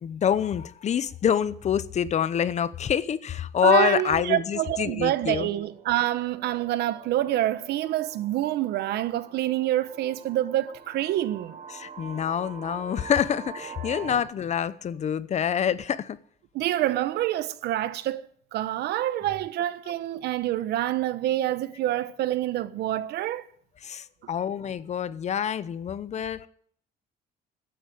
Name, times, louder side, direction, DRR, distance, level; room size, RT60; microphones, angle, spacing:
voice 1, 0.0-5.5 11.7-16.2 23.8-26.5, left 8 dB, 40° left, 0.8 m, -26 dB
voice 2, 3.6-11.6 16.5-18.2 18.5-23.4, right 14 dB, 75° right, 1.1 m, -27 dB
sound 1, 5.2-14.2, right 6 dB, 45° right, 4.7 m, -45 dB
14.0 x 10.5 x 9.1 m
cardioid pair, 110°, 17 cm